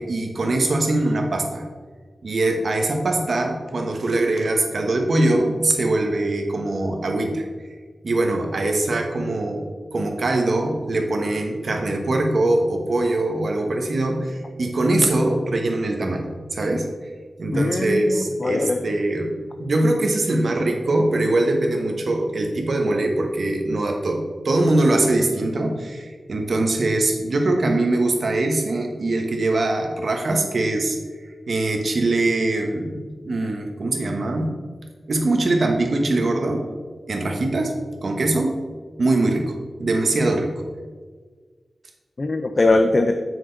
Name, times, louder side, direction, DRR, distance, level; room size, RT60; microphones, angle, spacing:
voice 1, 0.0-1.6 2.2-7.4 8.0-16.9 17.4-31.0 31.5-34.5 35.1-36.7 37.1-37.7 38.0-38.6 39.0-39.5 39.8-40.6, right 2 dB, 60° right, 3 dB, 1.2 m, -22 dB
voice 2, 17.5-18.8 42.2-43.1, left 2 dB, 40° left, 6 dB, 0.4 m, -20 dB
7.4 x 6.1 x 4.0 m, 1.5 s
wide cardioid pair, 110°, 0 cm